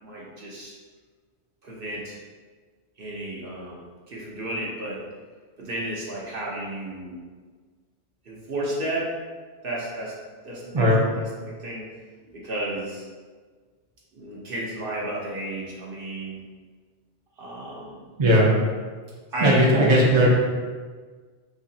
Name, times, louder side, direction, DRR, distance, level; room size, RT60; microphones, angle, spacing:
voice 1, 0.0-0.7 1.6-2.2 3.0-5.0 5.6-7.2 8.3-9.1 9.6-10.1 10.4-10.9 11.2-11.8 12.3-13.0 14.1-16.4 17.4-18.0 19.3-19.6, right 1 dB, 55° right, -5 dB, 1.0 m, -32 dB
voice 2, 18.2-18.5 19.4-20.3, equal, 30° right, -4 dB, 0.6 m, -17 dB
4.7 x 3.0 x 2.7 m, 1.5 s
omnidirectional pair, 1.2 m